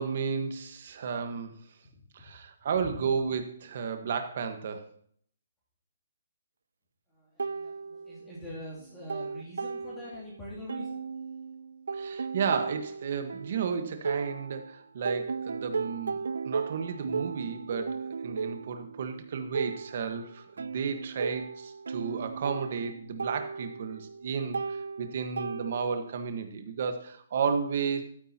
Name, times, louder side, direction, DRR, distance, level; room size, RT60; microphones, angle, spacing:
voice 1, 0.0-1.5 2.1-4.9 11.9-28.0, right 6 dB, 45° right, 7 dB, 1.3 m, -33 dB
voice 2, 7.1-11.0, left 1 dB, 10° left, -8 dB, 2.7 m, -44 dB
sound 1, 7.4-8.5 8.8-10.3 10.7-14.7 15.1-26.1, right 5 dB, 85° right, 0.4 m, -36 dB
12.5 x 9.5 x 2.9 m, 0.62 s
hypercardioid pair, 170°, 0 cm